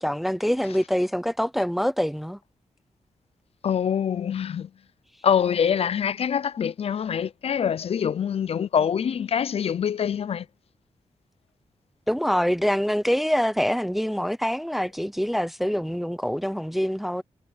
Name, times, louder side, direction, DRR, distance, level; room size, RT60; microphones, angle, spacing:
voice 1, 0.0-2.4 12.1-17.2, equal, ahead, 0.5 m, -25 dB
voice 2, 3.6-4.7 5.2-10.5, left 8 dB, 55° left, 0.4 m, -25 dB
wide cardioid pair, 145°, 12 cm